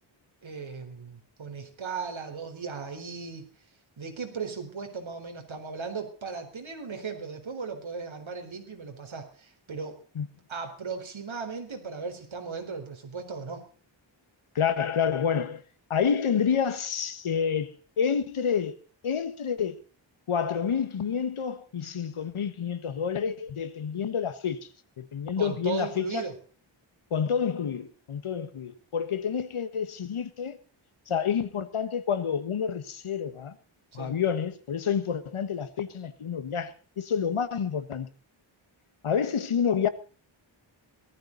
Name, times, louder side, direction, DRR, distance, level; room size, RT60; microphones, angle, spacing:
voice 1, 0.4-3.5 4.0-10.0 10.5-13.7 25.4-26.3 31.1-31.2 33.9-34.1, right 5 dB, 70° right, 4.2 m, -37 dB
voice 2, 14.5-15.6 15.9-18.7 19.0-19.8 20.3-24.6 25.0-26.2 27.1-30.6 31.1-33.5 33.9-38.1 39.0-39.9, left 7 dB, 80° left, 1.6 m, -28 dB
19.0 x 14.0 x 4.1 m
wide cardioid pair, 105°, 49 cm